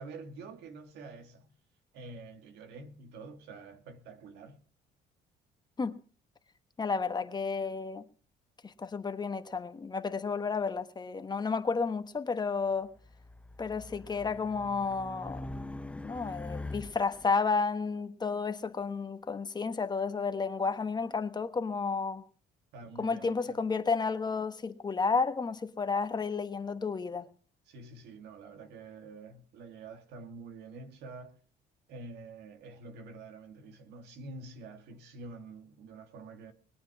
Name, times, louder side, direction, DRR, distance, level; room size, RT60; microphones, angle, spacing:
voice 1, 0.0-1.5 1.9-4.6 22.7-23.6 27.7-31.4 31.9-36.5, right 3 dB, 80° right, 2.4 m, -47 dB
voice 2, 6.8-8.0 8.6-12.9 13.6-15.5 16.0-22.2 23.0-27.3, left 4 dB, 25° left, 1.3 m, -32 dB
Race car auto racing, 13.0-17.3, left 2 dB, 5° left, 0.7 m, -43 dB
21.0 x 9.4 x 6.1 m
cardioid pair, 110°, 17 cm